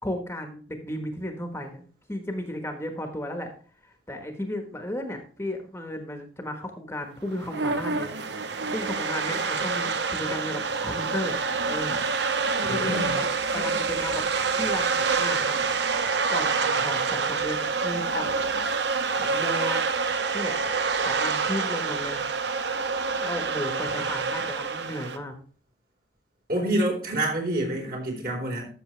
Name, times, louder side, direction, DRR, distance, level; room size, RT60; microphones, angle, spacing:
voice 1, 0.0-3.5 3.8-8.1 8.7-11.4 11.6-12.0 12.7-14.2 14.6-15.7 16.3-18.4 18.9-19.8 20.3-20.6 21.0-22.2 23.2-25.3, left 1 dB, 15° left, 5 dB, 1.3 m, -34 dB
sound 1, 7.3-25.2, right 4 dB, 75° right, 0.9 m, -27 dB
voice 2, 12.6-13.1 26.5-28.7, right 1 dB, 55° right, -1 dB, 4.2 m, -27 dB
13.5 x 6.8 x 3.2 m, 0.42 s
head